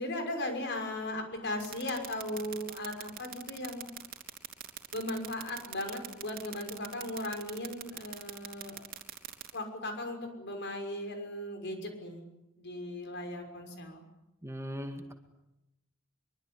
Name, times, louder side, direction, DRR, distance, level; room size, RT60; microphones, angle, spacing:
voice 1, 0.0-3.8 4.9-8.8 9.5-12.2 12.6-14.0, left 1 dB, 55° left, 5 dB, 6.1 m, -37 dB
sound 1, 1.6-9.5, right 11 dB, 45° right, 3.5 m, -41 dB
voice 2, 14.4-15.1, equal, 15° right, 5 dB, 2.0 m, -39 dB
24.0 x 23.5 x 9.9 m, 0.93 s
head